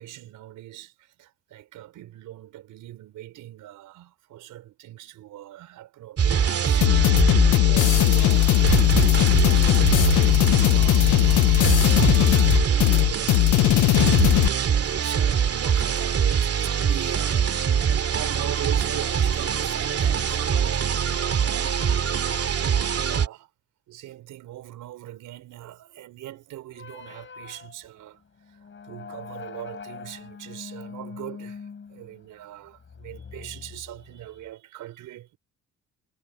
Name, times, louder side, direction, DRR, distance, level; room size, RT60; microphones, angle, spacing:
voice 1, 0.0-8.8 9.1-17.5 18.1-22.2 22.5-23.5 23.9-28.2 28.5-35.4, right 14 dB, 85° right, 4.5 m, -41 dB
sound 1, 6.2-23.3, right 7 dB, 50° right, 2.5 m, -24 dB
sound 2, 6.8-14.5, left 15 dB, 80° left, 0.8 m, -18 dB
sound 3, 26.7-34.5, left 6 dB, 40° left, 5.2 m, -43 dB
cardioid pair, 90°, 30 cm